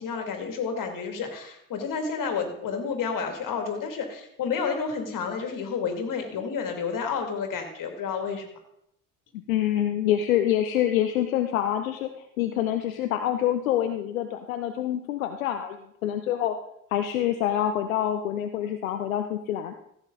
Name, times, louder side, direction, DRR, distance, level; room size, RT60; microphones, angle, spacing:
voice 1, 0.0-8.5, left 5 dB, 55° left, 5 dB, 2.4 m, -30 dB
voice 2, 9.5-12.1 12.4-16.6 16.9-19.7, left 11 dB, 85° left, 7 dB, 0.7 m, -26 dB
15.5 x 8.0 x 3.8 m, 0.74 s
hypercardioid pair, 50°, 40 cm